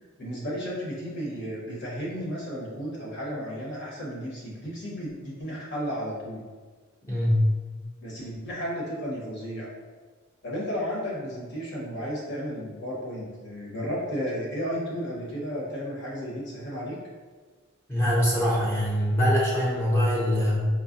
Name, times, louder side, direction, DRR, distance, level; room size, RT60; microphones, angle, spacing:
voice 1, 0.2-6.4 8.0-9.7 10.4-17.0, equal, 55° left, -6 dB, 1.1 m, -33 dB
voice 2, 7.0-7.4 17.9-20.7, equal, 10° left, -7 dB, 0.7 m, -23 dB
4.7 x 2.2 x 2.6 m, 1.4 s
head